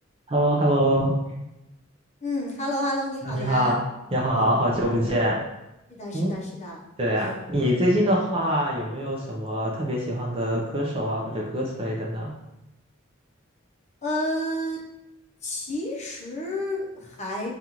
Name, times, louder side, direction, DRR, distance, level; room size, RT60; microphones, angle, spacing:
voice 1, 0.3-1.1 3.3-3.8 4.1-5.4 6.1-6.3 7.0-12.3, equal, 30° right, -2 dB, 0.5 m, -24 dB
voice 2, 2.2-3.7 4.3-4.6 5.9-6.8 7.1-7.4 14.0-14.8 15.4-17.5, left 1 dB, 35° left, -1 dB, 0.8 m, -30 dB
5.2 x 2.4 x 2.9 m, 0.96 s
head